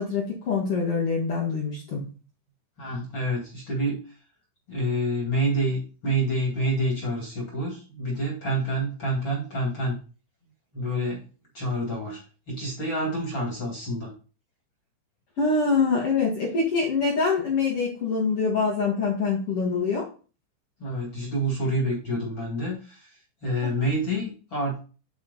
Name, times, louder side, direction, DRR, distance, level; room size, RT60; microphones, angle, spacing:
voice 1, 0.0-2.1 15.4-20.1, left 4 dB, 80° left, -4 dB, 1.3 m, -25 dB
voice 2, 2.8-4.0 4.7-10.0 10.7-11.2 11.5-12.2 12.5-14.1 20.8-23.1 23.4-24.8, right 1 dB, 45° left, -2 dB, 1.7 m, -27 dB
10.0 x 4.4 x 4.0 m, 0.35 s
omnidirectional pair, 5.6 m